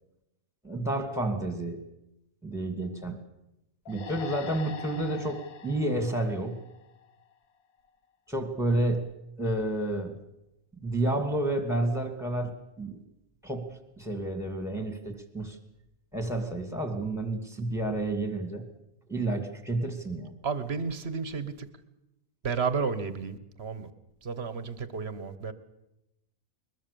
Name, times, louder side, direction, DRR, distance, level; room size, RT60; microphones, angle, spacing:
voice 1, 0.6-1.8 2.4-3.2 3.9-6.6 8.3-9.0 9.4-10.1 10.8-13.0 13.4-13.7 14.0-15.6 16.1-18.6 19.1-20.3, right 1 dB, ahead, 2.5 m, -30 dB
sound 1, 3.9-7.3, left 7 dB, 80° left, 1.5 m, -43 dB
voice 2, 20.4-21.7 22.4-23.9 24.2-25.5, right 5 dB, 45° right, 1.5 m, -32 dB
21.5 x 21.0 x 7.0 m
omnidirectional pair, 1.5 m